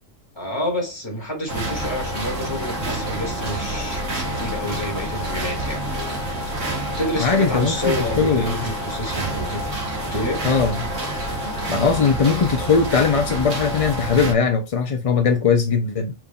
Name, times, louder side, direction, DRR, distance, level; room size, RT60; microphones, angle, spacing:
voice 1, 0.4-6.1 7.0-9.7 10.1-10.4, left 1 dB, 20° left, 2.2 m, -28 dB
sound 1, 1.5-14.3, right 1 dB, 75° right, 2.1 m, -28 dB
voice 2, 7.2-8.7 10.4-10.8 11.7-16.1, left 5 dB, 45° left, 0.5 m, -20 dB
5.2 x 4.5 x 2.3 m
omnidirectional pair, 1.3 m